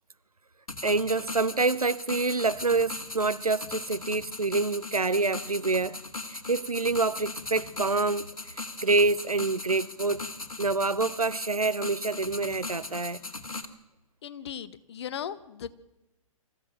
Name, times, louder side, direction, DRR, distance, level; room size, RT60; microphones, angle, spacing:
sound 1, 0.7-13.6, left 3 dB, 75° left, 2.1 m, -39 dB
voice 1, 0.8-6.0 6.3-10.3 10.6-13.2, right 3 dB, 85° right, 0.8 m, -27 dB
voice 2, 14.2-15.7, left 9 dB, 50° left, 1.2 m, -37 dB
26.0 x 15.0 x 7.7 m
figure-of-eight pair, 120°, 18 cm